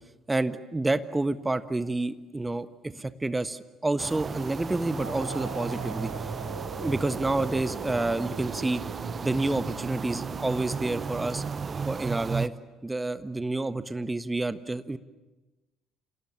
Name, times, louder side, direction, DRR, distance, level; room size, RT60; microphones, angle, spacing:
voice 1, 0.3-6.1 6.8-8.8 9.2-11.4 11.9-12.5 12.8-15.0, right 2 dB, 15° right, 12 dB, 1.4 m, -29 dB
sound 1, 4.0-12.5, right 5 dB, 35° right, 1.0 m, -34 dB
sound 2, 5.0-12.7, right 4 dB, 85° right, 1.7 m, -44 dB
29.5 x 27.0 x 7.3 m, 1.1 s
figure-of-eight pair, 50°, 0 cm